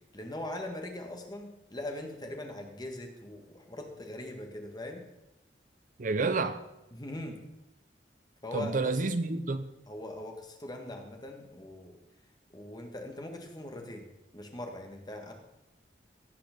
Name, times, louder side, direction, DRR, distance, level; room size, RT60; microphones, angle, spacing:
voice 1, 0.1-5.0 6.9-7.4 8.4-8.9 9.9-12.0 12.5-14.1 14.3-15.3, left 1 dB, 25° left, 1.6 m, -41 dB
voice 2, 6.0-6.6 8.5-9.7, right 3 dB, 50° right, 0.6 m, -29 dB
17.0 x 5.9 x 5.2 m
head